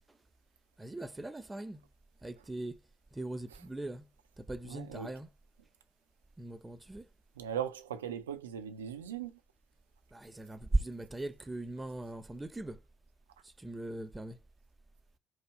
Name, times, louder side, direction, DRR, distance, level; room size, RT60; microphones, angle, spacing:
voice 1, 0.8-1.8 2.2-2.7 3.2-4.0 4.4-5.3 6.4-7.0 10.1-12.8 13.6-14.4, right 2 dB, 15° right, 0.6 m, -38 dB
voice 2, 4.6-5.2 7.4-9.4, right 9 dB, 75° right, 0.4 m, -39 dB
4.6 x 2.2 x 4.6 m
figure-of-eight pair, 50°, 0 cm